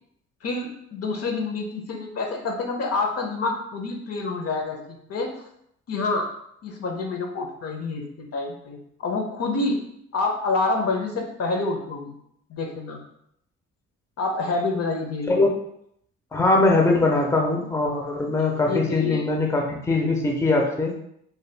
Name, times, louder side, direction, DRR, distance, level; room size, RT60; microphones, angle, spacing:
voice 1, 0.4-5.3 5.9-6.3 6.6-9.8 10.1-12.1 12.5-13.0 14.2-15.5 18.5-19.2, left 3 dB, 55° left, 2 dB, 0.7 m, -27 dB
voice 2, 16.3-20.9, left 2 dB, 10° left, 0 dB, 0.5 m, -21 dB
2.8 x 2.2 x 3.3 m, 0.72 s
cardioid pair, 90°, 30 cm